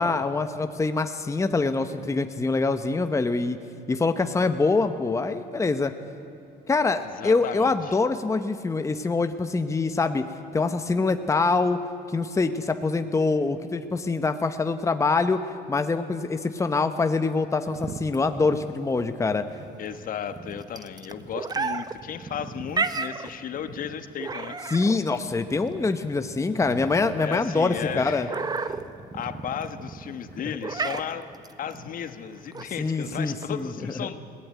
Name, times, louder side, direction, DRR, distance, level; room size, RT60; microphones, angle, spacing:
voice 1, 0.0-3.6 3.9-5.9 6.7-10.2 10.5-11.8 12.1-15.4 15.7-19.5 24.7-28.3 32.8-33.7, left 3 dB, 15° left, 8 dB, 1.0 m, -24 dB
voice 2, 7.1-8.0 19.8-24.6 27.2-28.4 28.6-28.8 29.1-31.3 31.6-34.2, left 8 dB, 55° left, 10 dB, 1.3 m, -35 dB
sound 1, 17.7-33.6, right 4 dB, 25° right, 0.9 m, -34 dB
20.5 x 17.5 x 9.3 m, 2.8 s
cardioid pair, 110°, 17 cm